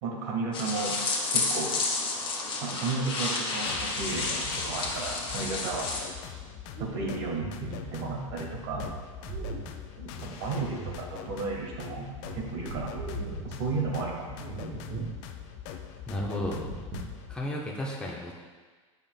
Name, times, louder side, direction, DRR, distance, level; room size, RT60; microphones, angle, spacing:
voice 1, 0.0-1.0 1.3-1.7 2.6-5.9 6.8-8.9 10.3-13.1 13.4-14.4, right 4 dB, 65° right, -1 dB, 1.6 m, -33 dB
sound 1, 0.5-6.0, left 3 dB, 30° left, 1.4 m, -31 dB
sound 2, 3.2-17.4, left 9 dB, 55° left, 0.5 m, -43 dB
sound 3, 6.7-11.8 12.1-13.9 14.4-15.3 15.5-15.6 16.4-17.3, right 3 dB, 40° right, 1.1 m, -40 dB
voice 2, 16.1-16.6 17.3-18.3, left 1 dB, 5° left, -4 dB, 1.0 m, -33 dB
8.4 x 5.5 x 2.3 m, 1.4 s
hypercardioid pair, 90°, 17 cm